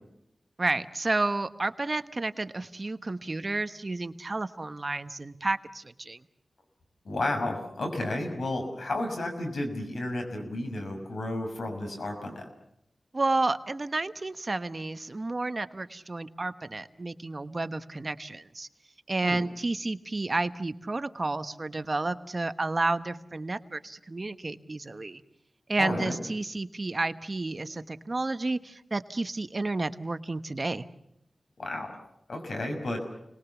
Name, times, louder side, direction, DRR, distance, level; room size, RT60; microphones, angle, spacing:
voice 1, 0.6-6.2 13.1-18.7 19.1-25.2 25.7-30.9, right 2 dB, 40° right, 10 dB, 1.1 m, -31 dB
voice 2, 7.0-12.4 19.2-19.4 25.8-26.2 31.6-31.9 32.3-33.0, left 2 dB, 90° left, 4 dB, 5.9 m, -32 dB
30.0 x 20.5 x 7.1 m, 0.79 s
wide cardioid pair, 90°, 0 cm